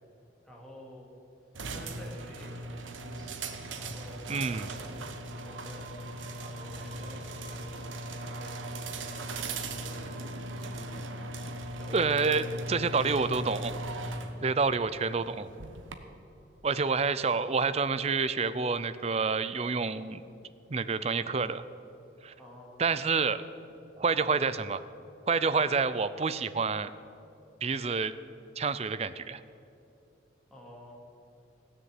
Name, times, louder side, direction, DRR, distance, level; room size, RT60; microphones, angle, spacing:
voice 1, 0.4-1.1 1.7-7.7 8.1-9.2 9.6-11.1 11.8-12.6 22.4-22.9 30.5-31.0, equal, 5° left, -3 dB, 2.3 m, -50 dB
sound 1, 1.5-16.0, right 1 dB, 85° right, 1.1 m, -39 dB
voice 2, 4.3-4.7 11.9-13.7 14.4-15.5 16.6-20.2 20.7-21.6 22.2-22.3 22.8-23.4 23.9-24.8 25.3-26.9 27.6-28.1 28.6-29.4, right 4 dB, 35° right, 13 dB, 0.4 m, -28 dB
sound 2, 5.3-17.1, right 3 dB, 65° right, 2.0 m, -52 dB
16.0 x 6.8 x 8.9 m, 2.8 s
head